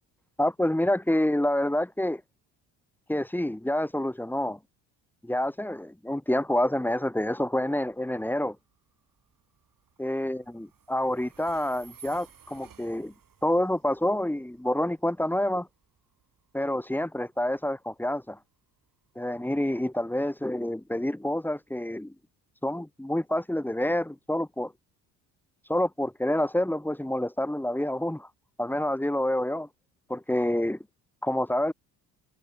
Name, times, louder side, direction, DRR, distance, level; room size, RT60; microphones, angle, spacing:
voice 1, 0.4-2.2 3.1-4.6 5.2-8.6 10.0-13.1 13.4-15.7 16.5-18.4 19.1-22.1 22.6-24.7 25.7-28.3 28.6-29.7 30.1-30.8 31.2-31.7, left 1 dB, 5° left, 1.5 m, -28 dB
Train, 7.1-21.8, right 7 dB, 45° right, 7.4 m, -58 dB
hypercardioid pair, 55°, 47 cm